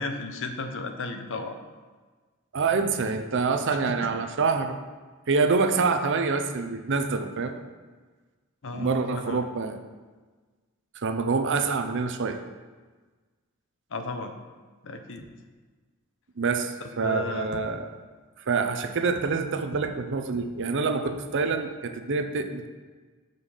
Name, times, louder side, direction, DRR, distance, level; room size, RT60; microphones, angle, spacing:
voice 1, 0.0-1.6 3.7-4.1 8.6-9.4 13.9-14.3 14.8-15.3 16.8-17.5, left 3 dB, 60° left, 7 dB, 0.7 m, -34 dB
voice 2, 2.5-4.8 5.3-7.5 8.7-9.8 11.0-12.4 16.4-17.9 18.5-22.7, right 4 dB, 55° right, 7 dB, 0.6 m, -26 dB
6.6 x 5.4 x 5.5 m, 1.4 s
head